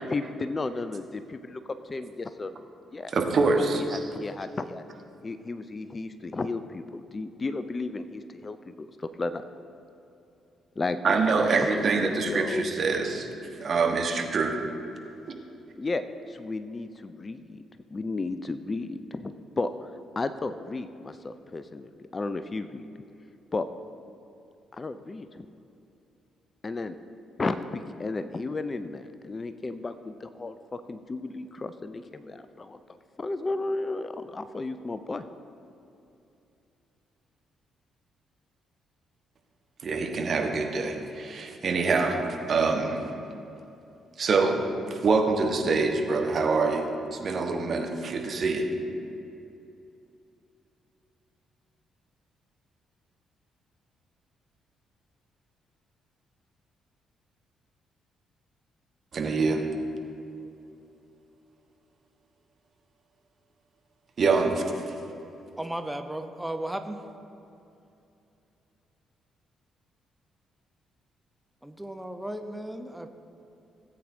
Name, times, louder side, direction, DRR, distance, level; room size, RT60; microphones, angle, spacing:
voice 1, 0.0-2.6 2.9-3.1 3.9-4.8 5.2-9.4 10.8-12.6 15.8-17.6 17.9-19.7 20.2-22.8 23.5-23.7 24.7-25.5 26.6-27.0 27.4-32.8 33.2-35.2, left 3 dB, 30° left, 11 dB, 0.4 m, -33 dB
voice 2, 3.1-4.0 11.0-13.3 13.6-14.6 39.8-42.2 42.5-43.0 44.2-46.9 47.1-48.7 59.1-59.6 64.2-64.6, right 4 dB, 45° right, 3 dB, 1.2 m, -25 dB
voice 3, 65.6-67.0 71.6-73.1, right 1 dB, 5° right, 7 dB, 0.7 m, -35 dB
17.0 x 8.5 x 2.7 m, 2.7 s
figure-of-eight pair, 40°, 0 cm